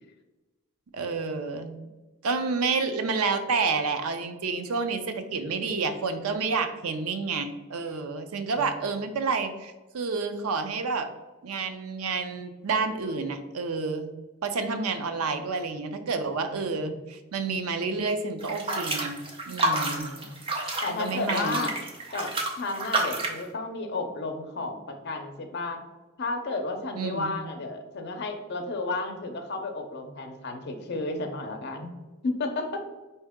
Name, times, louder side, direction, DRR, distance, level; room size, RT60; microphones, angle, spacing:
voice 1, 0.9-1.8 2.2-11.1 11.4-14.1 14.4-19.2 19.5-20.1 20.9-21.7 26.9-27.4, right 4 dB, 85° right, 8 dB, 0.5 m, -29 dB
sound 1, 18.4-23.4, right 2 dB, 25° right, 0.6 m, -29 dB
voice 2, 19.6-20.4 20.8-21.8 22.1-25.8 26.2-31.9 32.2-32.8, left 3 dB, 50° left, 4 dB, 0.6 m, -33 dB
4.5 x 2.8 x 3.5 m, 1.1 s
head